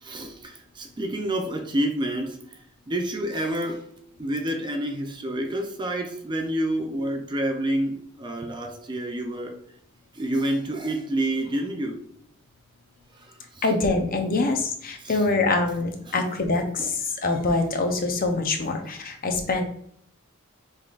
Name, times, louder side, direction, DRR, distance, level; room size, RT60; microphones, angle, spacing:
voice 1, 0.0-2.6 2.9-3.9 4.2-9.6 10.1-12.0 13.2-13.7 15.0-15.2 16.1-16.3 16.8-16.9, right 1 dB, 20° right, 0.5 m, -28 dB
voice 2, 13.6-19.7, left 3 dB, 40° left, 0.7 m, -25 dB
5.7 x 3.5 x 2.5 m
head